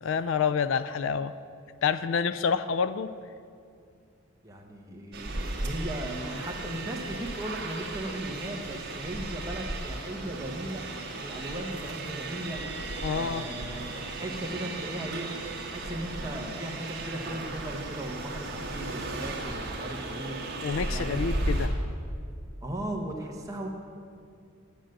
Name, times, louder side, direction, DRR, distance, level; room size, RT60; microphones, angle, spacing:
voice 1, 0.0-1.3 1.8-3.1 13.0-13.5 20.6-21.7, left 6 dB, 60° left, 13 dB, 0.3 m, -28 dB
voice 2, 4.4-10.8 11.2-12.6 13.1-20.4 20.9-21.3 22.6-23.7, right 1 dB, 15° right, 0 dB, 1.1 m, -37 dB
sound 1, 5.1-21.7, right 2 dB, 50° right, 1.5 m, -35 dB
9.9 x 9.0 x 6.5 m, 2.3 s
head